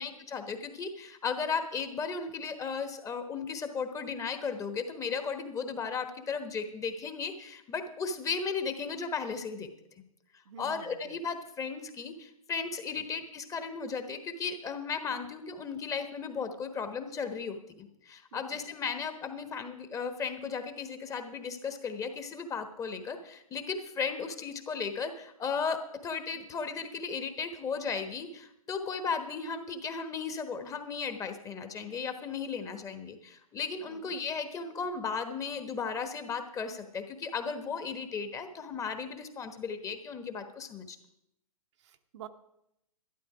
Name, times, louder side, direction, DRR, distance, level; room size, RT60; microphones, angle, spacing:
voice 1, 0.0-9.7 10.3-41.0, left 5 dB, 15° left, 8 dB, 1.2 m, -35 dB
voice 2, 10.4-11.2 18.3-18.6 33.9-34.2 41.8-42.3, right 9 dB, 50° right, 7 dB, 1.0 m, -49 dB
12.5 x 11.5 x 5.0 m, 0.79 s
figure-of-eight pair, 115°, 19 cm